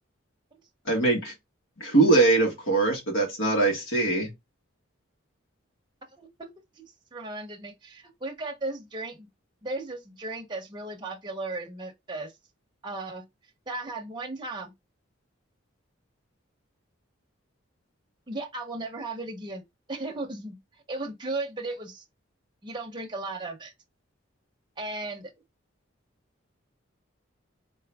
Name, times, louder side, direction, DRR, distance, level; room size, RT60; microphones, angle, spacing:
voice 1, 0.8-1.3 1.8-4.3, right 3 dB, 75° left, 1.8 m, -22 dB
voice 2, 6.2-6.8 7.1-9.3 9.6-12.3 12.8-13.3 13.7-14.7 18.3-19.6 19.9-20.6 20.9-22.0 22.6-23.7 24.8-25.3, right 2 dB, 20° right, 0.8 m, -36 dB
3.8 x 2.8 x 3.4 m
head